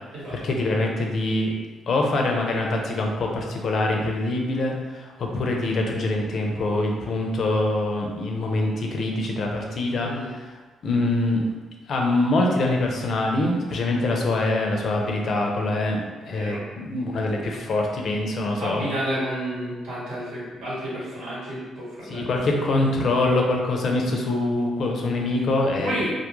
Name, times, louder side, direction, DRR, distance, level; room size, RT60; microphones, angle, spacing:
voice 1, 0.3-1.5 1.9-10.5 10.8-11.5 11.9-16.0 16.3-18.8 22.1-26.0, left 2 dB, 60° left, 1 dB, 0.4 m, -24 dB
voice 2, 9.9-10.3 16.2-16.6 18.6-22.6 23.8-24.3 25.8-26.1, right 1 dB, 85° right, -8 dB, 1.1 m, -31 dB
2.3 x 2.0 x 3.0 m, 1.3 s
cardioid pair, 90°, 0 cm